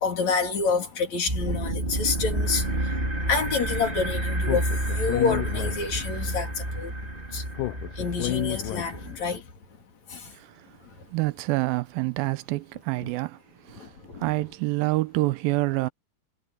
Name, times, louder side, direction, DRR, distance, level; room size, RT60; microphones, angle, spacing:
voice 1, 0.0-6.9 7.3-7.4 8.0-9.4 10.1-10.3 13.0-13.1 13.8-14.3, left 4 dB, 45° left, 4.3 m, -28 dB
sound 1, 1.3-9.4, right 1 dB, 15° right, 3.1 m, -30 dB
Speech, 4.4-6.3 7.5-9.3, left 18 dB, 85° left, 1.8 m, -31 dB
voice 2, 10.3-10.7 11.1-13.4 13.6-13.9 14.2-15.9, right 20 dB, 80° right, 2.2 m, -27 dB
omnidirectional pair, 4.6 m